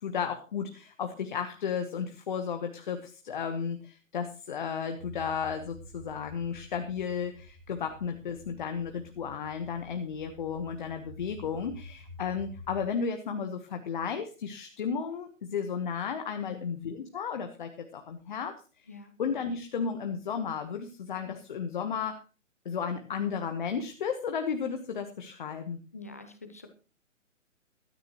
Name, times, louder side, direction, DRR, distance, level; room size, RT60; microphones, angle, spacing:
voice 1, 0.0-18.9 19.2-22.2 22.6-25.8, left 6 dB, 35° left, 7 dB, 1.2 m, -34 dB
sound 1, 5.0-12.9, equal, 60° right, 2.2 m, -49 dB
voice 2, 25.9-26.7, left 3 dB, 10° left, 7 dB, 0.5 m, -44 dB
16.0 x 13.5 x 3.0 m, 0.33 s
figure-of-eight pair, 135°, 40 cm